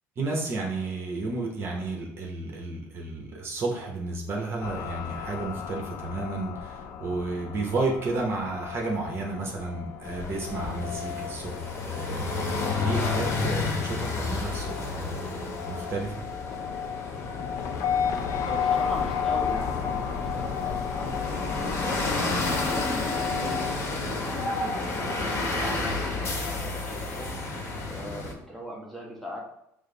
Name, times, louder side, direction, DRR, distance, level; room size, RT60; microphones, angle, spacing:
voice 1, 0.2-16.2, right 3 dB, 45° right, 0 dB, 0.8 m, -32 dB
sound 1, 4.6-23.8, left 7 dB, 60° left, 0.4 m, -33 dB
sound 2, 10.0-28.3, left 3 dB, 45° left, 0.8 m, -31 dB
voice 2, 18.4-22.3 22.6-27.4 27.9-29.4, equal, ahead, -3 dB, 1.1 m, -40 dB
4.9 x 2.0 x 3.8 m, 0.79 s
cardioid pair, 105°, 6 cm